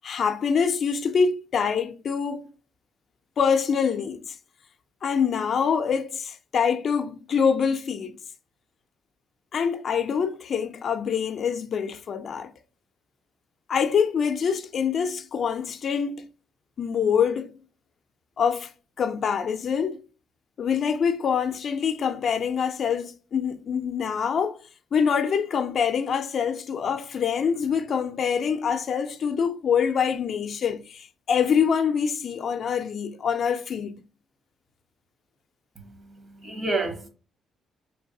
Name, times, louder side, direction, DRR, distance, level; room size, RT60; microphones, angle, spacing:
voice 1, 0.0-2.5 3.4-4.4 5.0-8.2 9.5-12.5 13.7-16.2 16.8-17.5 18.4-18.7 19.0-20.0 20.6-24.6 24.9-33.9, left 6 dB, 55° left, 0.5 m, -25 dB
voice 2, 35.7-37.1, right 2 dB, 40° right, 1.3 m, -30 dB
4.5 x 3.2 x 2.7 m
cardioid pair, 90°, 0 cm